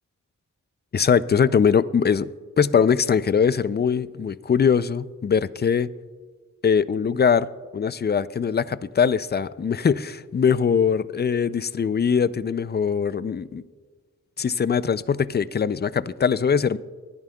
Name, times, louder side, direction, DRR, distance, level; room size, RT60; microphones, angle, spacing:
voice 1, 0.9-2.3 2.6-5.9 6.6-7.5 7.7-13.6 14.4-16.8, left 6 dB, 30° left, 0.4 m, -21 dB
20.0 x 10.5 x 2.3 m
cardioid pair, 55°, 33 cm